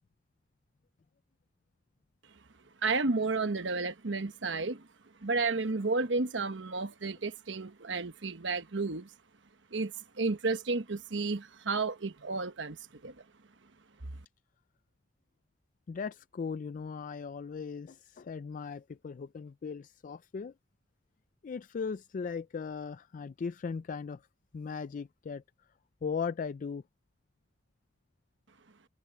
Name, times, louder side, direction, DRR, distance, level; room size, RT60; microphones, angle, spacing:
voice 1, 2.8-4.9 5.2-9.1 9.7-12.8 13.0-13.1 14.0-14.1, right 3 dB, 70° right, 1.1 m, -32 dB
voice 2, 15.9-20.5 21.4-24.2 24.5-25.4 26.0-26.8, left 5 dB, 45° left, 0.3 m, -38 dB
head